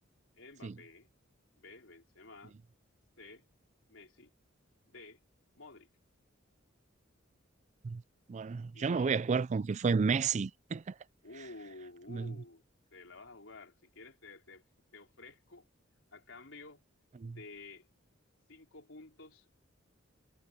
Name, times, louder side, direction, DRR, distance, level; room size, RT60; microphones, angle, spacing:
voice 1, 0.3-1.1 1.6-2.6 3.2-3.5 3.9-4.3 4.9-5.2 5.5-5.9 8.7-9.5 11.2-12.6 12.9-14.7 14.9-15.7 16.1-16.8 17.2-17.9 18.5-19.5, left 3 dB, 75° left, 3.9 m, -52 dB
voice 2, 8.3-10.9 12.1-12.3 17.2-17.4, right 5 dB, 35° right, 0.4 m, -31 dB
head